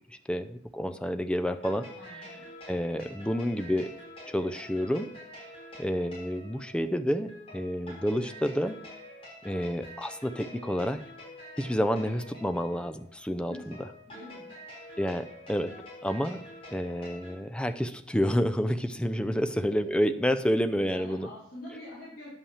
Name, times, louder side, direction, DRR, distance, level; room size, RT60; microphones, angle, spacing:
voice 1, 0.3-1.9 2.7-3.9 4.3-5.1 5.8-8.8 9.4-11.0 11.6-13.5 15.0-15.7 16.0-16.4 16.7-21.3, equal, 5° left, 9 dB, 0.5 m, -29 dB
sound 1, 1.5-17.3, left 1 dB, 30° left, 4.6 m, -47 dB
voice 2, 1.9-2.4 13.5-13.7 14.1-14.5 19.3-19.4 20.8-22.3, left 1 dB, 50° left, -9 dB, 4.1 m, -45 dB
9.9 x 5.5 x 7.2 m, 0.69 s
head